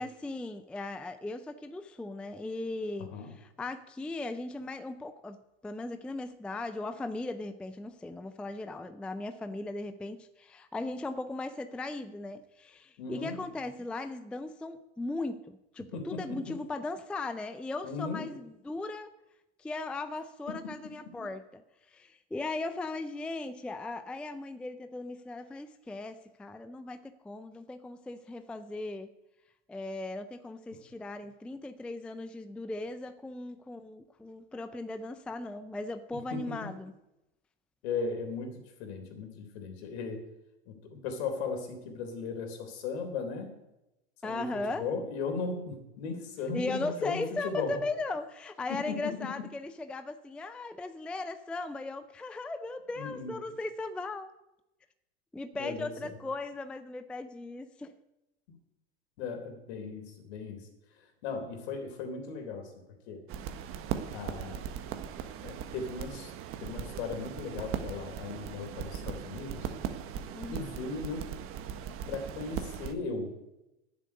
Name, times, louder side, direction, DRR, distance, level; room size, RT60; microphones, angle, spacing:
voice 1, 0.0-5.4 5.6-19.1 19.6-21.6 21.9-29.1 29.7-36.9 44.2-44.8 46.5-54.3 55.3-57.9 70.3-70.7, left 2 dB, 5° left, 10 dB, 0.4 m, -38 dB
voice 2, 13.0-13.4 15.9-16.6 17.8-18.2 20.5-20.6 30.7-30.8 36.1-36.6 37.8-40.2 40.7-43.5 44.2-47.8 48.7-49.3 53.0-53.4 55.5-56.1 59.2-60.7 61.2-62.7 63.1-63.2 64.1-64.6 65.2-66.3 66.6-69.7 70.5-71.3 72.1-73.3, left 4 dB, 65° left, 5 dB, 3.5 m, -37 dB
sound 1, 63.3-72.9, right 9 dB, 40° right, 1.3 m, -39 dB
10.5 x 7.6 x 9.5 m, 0.94 s
hypercardioid pair, 120°, 35 cm